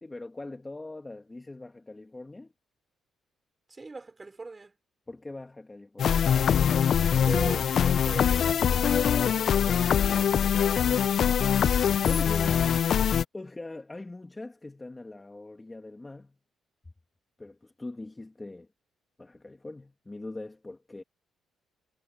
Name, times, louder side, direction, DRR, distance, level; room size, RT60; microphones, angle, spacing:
voice 1, 0.0-2.5 5.1-6.2 12.0-12.7 13.3-16.4 17.4-18.7 19.2-21.0, left 2 dB, 15° left, 2.5 m, -41 dB
voice 2, 3.7-4.7 7.1-10.5, right 3 dB, 25° right, 5.5 m, -40 dB
sound 1, 6.0-13.2, left 8 dB, 60° left, 0.5 m, -23 dB
cardioid pair, 90°, 0 cm